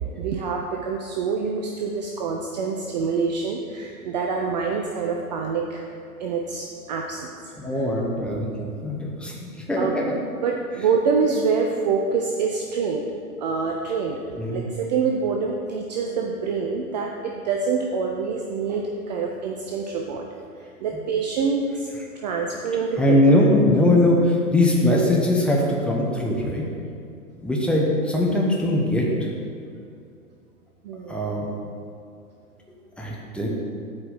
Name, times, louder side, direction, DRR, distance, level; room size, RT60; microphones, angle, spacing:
voice 1, 0.2-5.8 6.2-7.5 9.8-9.9 10.4-13.0 13.4-20.3 20.6-21.9 22.2-23.3 30.8-31.2, right 5 dB, 30° right, 2 dB, 0.5 m, -26 dB
voice 2, 7.6-10.2 14.4-14.6 23.0-26.7 27.4-29.3 31.1-31.5 33.0-33.5, left 1 dB, ahead, -3 dB, 0.9 m, -21 dB
8.4 x 4.7 x 7.5 m, 2.4 s
figure-of-eight pair, 100°, 46 cm